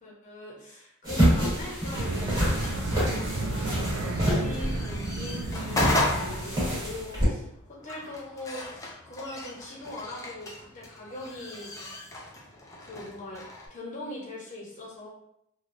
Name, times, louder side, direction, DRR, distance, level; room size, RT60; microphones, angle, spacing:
voice 1, 0.0-11.9 12.8-15.1, left 2 dB, 35° left, -4 dB, 0.9 m, -41 dB
sound 1, 1.0-7.2, equal, 15° right, 1.3 m, -28 dB
sound 2, 1.6-13.7, left 1 dB, 15° left, 0.4 m, -35 dB
sound 3, 1.9-7.0, right 2 dB, 70° right, 0.4 m, -33 dB
3.2 x 2.3 x 2.6 m, 0.76 s
head